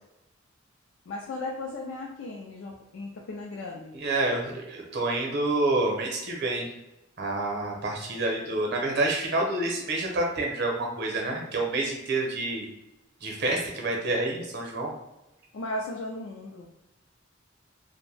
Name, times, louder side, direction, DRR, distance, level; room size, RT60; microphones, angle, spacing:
voice 1, 1.1-4.0 15.5-16.7, left 2 dB, 70° left, -1 dB, 0.4 m, -36 dB
voice 2, 3.9-6.7 7.2-12.7 13.2-14.9, right 2 dB, 60° right, 0 dB, 0.7 m, -28 dB
2.6 x 2.1 x 3.2 m, 0.94 s
head